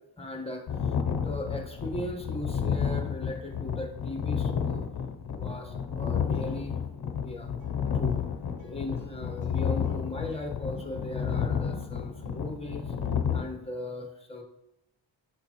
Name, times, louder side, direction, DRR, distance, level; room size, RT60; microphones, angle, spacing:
voice 1, 0.0-4.8 5.3-6.8 7.1-7.5 7.9-8.2 8.6-12.9 13.3-14.4, left 1 dB, 10° left, 3 dB, 1.0 m, -38 dB
sound 1, 0.7-13.4, left 7 dB, 55° left, 0.7 m, -31 dB
sound 2, 6.3-12.8, left 3 dB, 75° right, 2.6 m, -53 dB
8.3 x 6.9 x 2.9 m, 0.90 s
wide cardioid pair, 160°, 46 cm